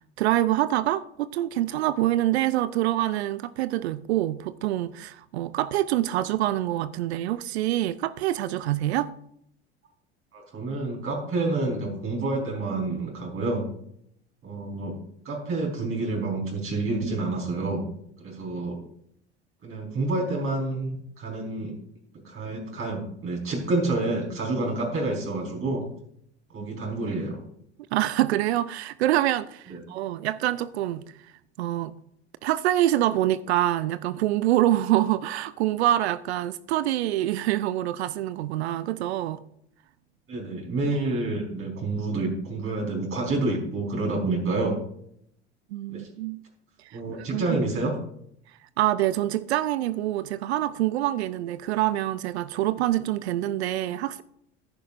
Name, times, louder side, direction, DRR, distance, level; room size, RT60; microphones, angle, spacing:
voice 1, 0.0-9.1 27.9-31.0 31.6-31.9 32.4-39.4 45.7-46.4 46.8-47.0 47.3-47.4 48.8-54.2, right 14 dB, 70° right, 0.6 m, -25 dB
voice 2, 10.3-13.6 14.4-14.9 15.2-17.9 18.2-18.8 19.6-21.7 22.2-25.8 26.5-27.4 29.7-29.8 40.3-44.8 45.9-46.1 46.9-47.9, right 2 dB, 40° right, 4.5 m, -28 dB
14.0 x 10.5 x 2.5 m
hypercardioid pair, 70°, 34 cm